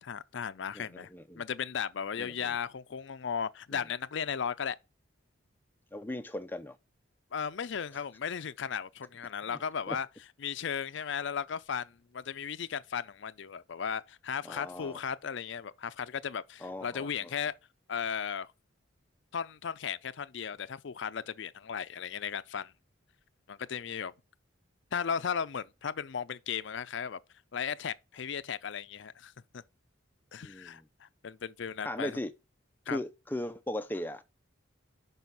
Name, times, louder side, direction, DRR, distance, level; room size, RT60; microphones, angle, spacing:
voice 1, 0.0-1.1 1.4-4.8 7.3-10.1 10.4-17.5 17.9-18.5 19.3-22.7 23.5-24.1 24.9-27.2 27.5-29.6 30.3-32.1 32.9-33.0, left 7 dB, 65° left, 0.5 m, -36 dB
voice 2, 0.7-1.4 2.2-2.6 3.7-3.8 5.9-6.8 7.9-8.0 9.5-9.6 9.9-10.0 14.4-15.0 16.6-17.3 30.4-30.9 31.8-32.3 32.9-34.2, left 1 dB, 10° left, 0.4 m, -38 dB
6.0 x 5.5 x 5.3 m
head